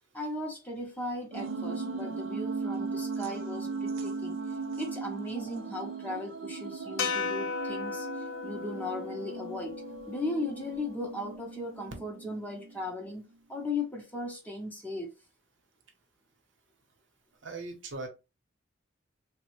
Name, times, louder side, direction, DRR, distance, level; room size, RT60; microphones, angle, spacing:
voice 1, 0.1-4.4 4.8-9.8 10.1-15.1, left 2 dB, 10° left, 0.6 m, -37 dB
sound 1, 1.3-12.8, right 4 dB, 85° right, 0.4 m, -38 dB
sound 2, 7.0-11.3, left 6 dB, 80° left, 0.4 m, -36 dB
voice 2, 17.4-18.1, right 3 dB, 70° right, 0.8 m, -39 dB
3.2 x 2.1 x 3.0 m
head